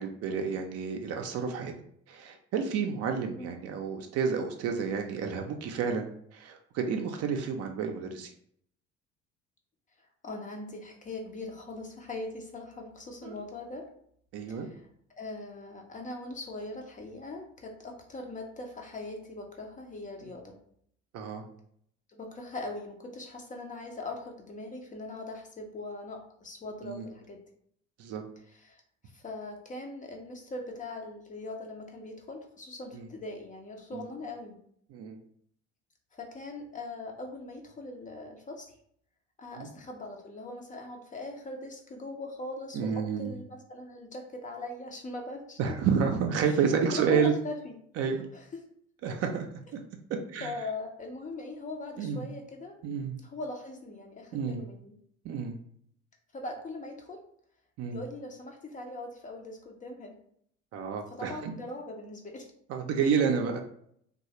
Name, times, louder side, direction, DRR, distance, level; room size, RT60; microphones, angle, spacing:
voice 1, 0.0-1.7 2.1-6.1 6.3-8.3 13.2-13.3 14.3-14.7 20.2-20.3 21.1-21.4 26.8-27.1 28.0-28.2 32.9-33.0 33.9-34.1 34.9-35.2 39.5-39.7 42.7-43.3 45.6-47.3 48.0-48.2 49.0-49.5 49.7-49.8 50.3-50.5 52.0-52.2 52.8-53.1 54.3-54.6 55.2-55.6 57.8-58.0 60.7-61.5 62.7-63.6, right 6 dB, 40° right, 4 dB, 0.5 m, -30 dB
voice 2, 10.0-13.9 14.5-14.8 15.2-20.6 22.1-27.4 28.5-34.6 36.1-38.7 39.4-45.6 46.5-46.6 46.9-47.7 48.3-48.7 50.4-54.9 56.3-57.2 57.9-60.2 61.1-62.5, left 2 dB, 20° left, 2 dB, 0.5 m, -41 dB
3.0 x 2.3 x 2.8 m, 0.66 s
figure-of-eight pair, 60°, 38 cm